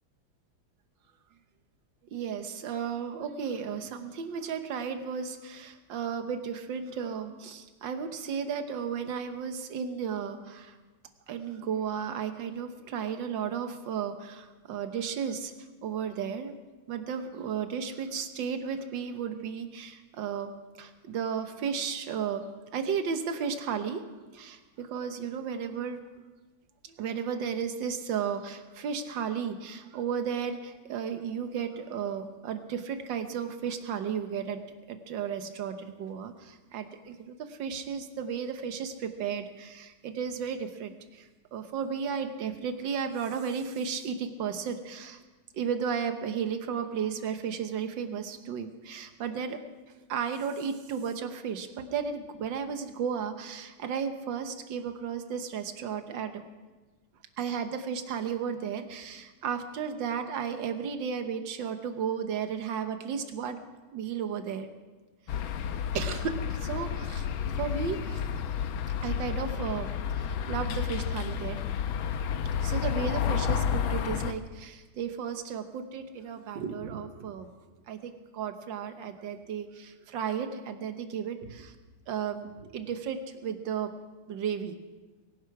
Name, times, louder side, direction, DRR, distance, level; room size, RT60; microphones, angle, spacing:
voice 1, 2.1-10.8 11.3-15.5 15.8-16.5 16.9-20.5 20.8-22.4 22.7-24.0 24.3-26.0 26.8-34.6 34.9-45.2 45.5-49.6 50.1-56.4 57.4-63.6 63.9-64.7 65.9-67.3 67.5-68.2 69.0-69.9 70.1-71.6 72.6-77.5 77.9-81.7 82.1-83.9 84.3-84.8, right 7 dB, 65° right, 8 dB, 1.8 m, -34 dB
sound 1, 65.3-74.3, left 8 dB, 75° left, 1.6 m, -31 dB
24.5 x 10.5 x 4.8 m, 1.3 s
omnidirectional pair, 2.3 m